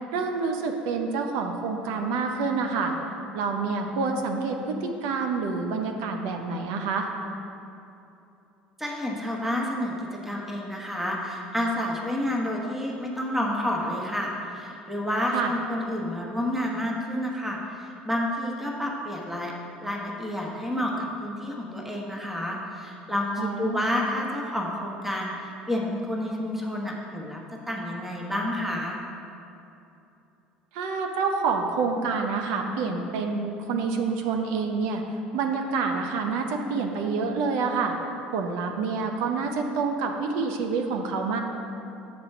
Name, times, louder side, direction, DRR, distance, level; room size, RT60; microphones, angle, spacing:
voice 1, 0.1-2.9 3.3-7.1 15.3-15.5 23.4-23.8 30.7-35.0 35.3-37.9 38.3-41.4, right 4 dB, 65° right, 3 dB, 0.7 m, -27 dB
voice 2, 8.8-19.5 19.8-27.4 27.7-29.0, left 1 dB, 5° right, -1 dB, 1.2 m, -29 dB
7.7 x 4.2 x 5.9 m, 2.8 s
hypercardioid pair, 65°, 5 cm